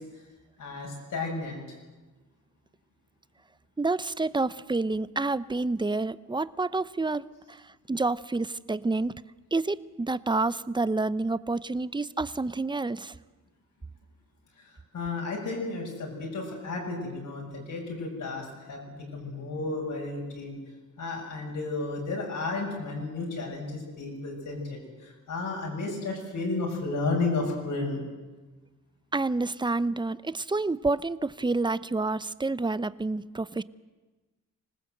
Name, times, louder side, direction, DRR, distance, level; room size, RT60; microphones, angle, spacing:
voice 1, 0.6-1.6 14.6-20.6 21.0-28.0, left 3 dB, 75° left, -2 dB, 6.9 m, -33 dB
voice 2, 3.8-9.2 9.5-13.1 29.1-33.6, right 3 dB, 15° right, 17 dB, 0.7 m, -29 dB
26.0 x 19.0 x 7.9 m, 1.2 s
cardioid pair, 85°, 32 cm